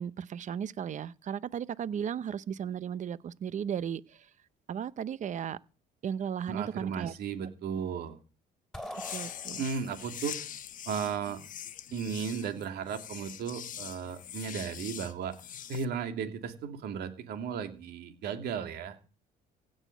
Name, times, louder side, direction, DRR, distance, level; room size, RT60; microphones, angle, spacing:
voice 1, 0.0-4.3 4.7-5.6 6.0-7.1 9.1-9.6, right 8 dB, 45° right, 0.8 m, -35 dB
voice 2, 6.5-8.2 9.6-10.5 10.9-11.4 11.9-15.3 15.7-19.0, right 7 dB, 70° right, 2.8 m, -35 dB
sound 1, 8.7-10.0, left 1 dB, ahead, 3.1 m, -43 dB
sound 2, 8.9-15.9, left 10 dB, 50° left, 1.0 m, -43 dB
16.5 x 6.4 x 9.3 m
cardioid pair, 110°, 17 cm